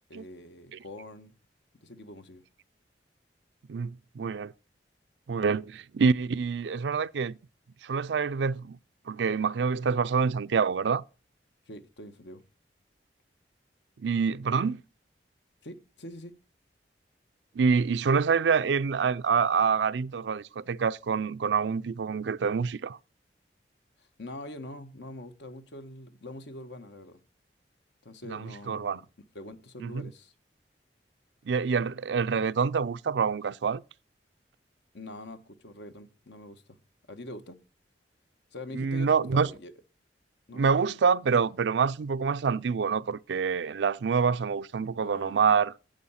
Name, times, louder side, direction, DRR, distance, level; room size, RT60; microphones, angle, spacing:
voice 1, 0.1-1.3 1.8-2.4 11.7-12.4 15.6-16.3 24.0-27.2 28.0-29.0 29.3-30.3 34.9-36.8 37.1-37.6 38.5-39.7 40.5-40.6 45.0-45.4, left 1 dB, 85° left, 1.3 m, -44 dB
voice 2, 3.7-4.5 5.3-7.4 7.8-8.8 9.1-11.0 14.0-14.8 17.6-23.0 28.3-29.0 29.8-30.0 31.5-33.8 38.7-39.5 40.5-45.7, right 5 dB, 80° right, 0.4 m, -26 dB
10.5 x 7.8 x 5.6 m
head